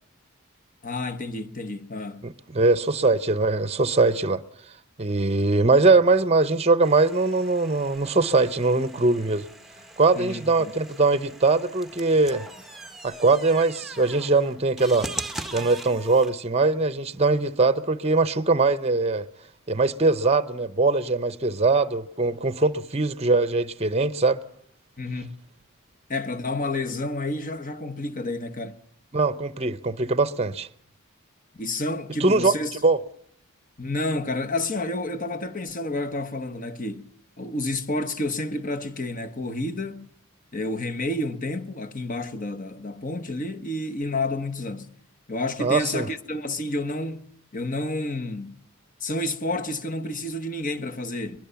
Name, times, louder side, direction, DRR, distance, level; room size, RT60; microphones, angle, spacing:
voice 1, 0.8-2.3 10.1-10.7 25.0-25.4 26.1-28.8 31.5-32.7 33.8-37.1 37.4-40.1 40.5-45.0 45.3-47.3 47.5-48.6 49.0-51.5, left 2 dB, 40° left, 1.3 m, -30 dB
voice 2, 2.2-4.4 5.0-9.5 10.0-12.5 13.0-15.1 15.5-19.2 19.7-24.4 29.1-30.7 32.2-32.5 32.8-33.0 45.6-46.1, right 3 dB, 30° right, 0.8 m, -21 dB
sound 1, 6.8-16.3, right 2 dB, ahead, 0.9 m, -40 dB
21.5 x 21.5 x 7.0 m
head